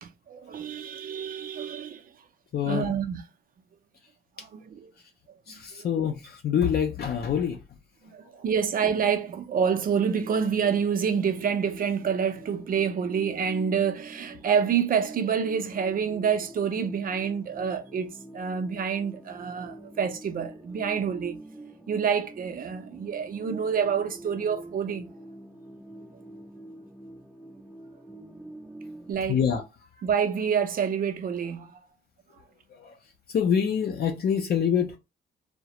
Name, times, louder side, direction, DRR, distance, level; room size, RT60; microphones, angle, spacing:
voice 1, 0.0-2.0 2.7-3.2 4.5-4.9 5.7-5.9 8.0-21.4 21.9-25.0 29.1-29.4 30.0-31.8, right 7 dB, 45° right, 0.5 m, -27 dB
voice 2, 2.5-3.0 5.5-7.6 29.3-29.6 29.9-30.0 32.7-35.0, left 8 dB, 55° left, 0.5 m, -26 dB
sound 1, 9.5-29.1, right 1 dB, 5° right, 0.6 m, -45 dB
2.3 x 2.1 x 2.8 m
cardioid pair, 90°, 20 cm